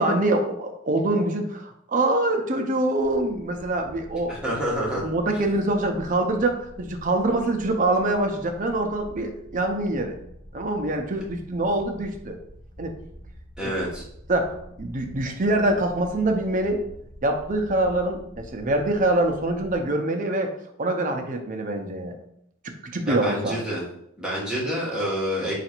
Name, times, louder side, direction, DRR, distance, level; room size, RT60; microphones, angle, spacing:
voice 1, 0.0-4.6 4.9-10.2 10.5-12.4 12.8-12.9 13.6-13.7 14.3-16.8 17.2-20.5 20.8-22.1 22.8-23.6, right 2 dB, 40° right, 5 dB, 0.6 m, -24 dB
sound 1, 3.0-19.8, equal, 35° left, 0.7 m, -46 dB
voice 2, 4.3-5.0 13.6-14.0 23.1-23.8 24.2-25.5, equal, 5° right, -6 dB, 1.3 m, -27 dB
3.8 x 2.5 x 4.4 m, 0.74 s
head